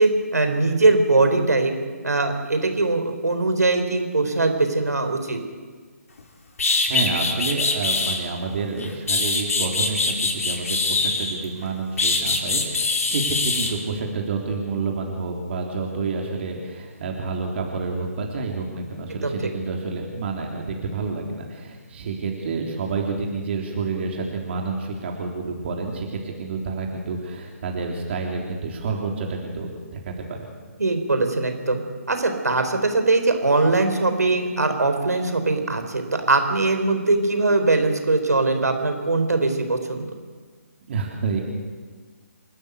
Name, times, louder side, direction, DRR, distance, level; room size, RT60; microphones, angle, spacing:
voice 1, 0.0-1.7 2.0-5.4 19.1-19.3 30.8-40.2, right 3 dB, 85° right, 7 dB, 4.4 m, -21 dB
sound 1, 6.2-6.3 6.6-8.2 8.8-11.4 12.0-13.7, left 3 dB, 65° left, 4.6 m, -23 dB
voice 2, 6.9-30.5 40.9-41.4, right 4 dB, 45° right, 1 dB, 3.6 m, -29 dB
28.5 x 13.5 x 8.3 m, 1.5 s
figure-of-eight pair, 145°, 9 cm